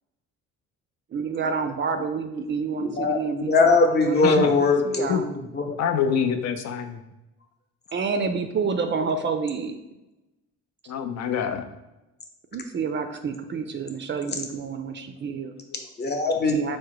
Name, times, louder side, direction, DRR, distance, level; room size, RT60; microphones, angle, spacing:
voice 1, 1.1-4.5 4.8-5.3 7.9-9.7 12.5-15.5 16.5-16.8, right 5 dB, 40° right, 7 dB, 0.4 m, -29 dB
voice 2, 2.8-3.2 3.5-5.8 16.0-16.8, left 3 dB, 35° left, 3 dB, 0.8 m, -21 dB
voice 3, 5.8-7.0 8.9-9.0 10.9-11.6 15.7-15.8, left 7 dB, 60° left, 7 dB, 0.6 m, -26 dB
4.7 x 2.2 x 4.7 m, 0.99 s
cardioid pair, 90°, 30 cm